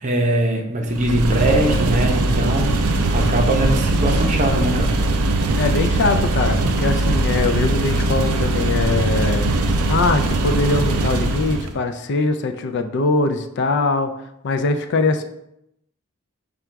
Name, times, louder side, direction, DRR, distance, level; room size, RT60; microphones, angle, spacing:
voice 1, 0.0-5.0, right 1 dB, 35° right, 2 dB, 0.6 m, -21 dB
sound 1, 0.9-11.7, right 2 dB, 80° right, 0.5 m, -20 dB
voice 2, 5.5-14.1 14.4-15.2, left 3 dB, 55° left, 7 dB, 0.4 m, -22 dB
4.9 x 2.3 x 4.4 m, 0.80 s
head